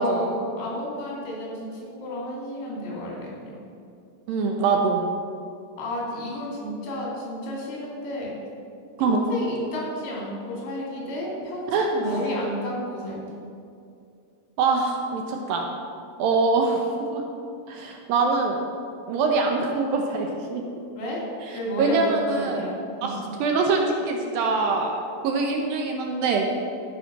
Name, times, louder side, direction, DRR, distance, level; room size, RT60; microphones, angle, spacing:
voice 1, 0.0-3.6 5.8-8.4 9.0-13.4 21.0-21.3 21.5-23.2, equal, 75° left, -4 dB, 4.6 m, -32 dB
voice 2, 4.3-5.0 9.0-9.2 11.7-11.9 14.6-15.7 16.2-16.8 17.1-17.2 17.7-18.6 19.1-20.6 21.8-22.6 23.0-26.5, right 4 dB, 75° right, 2 dB, 2.3 m, -23 dB
14.0 x 5.5 x 5.8 m, 2.5 s
omnidirectional pair, 4.6 m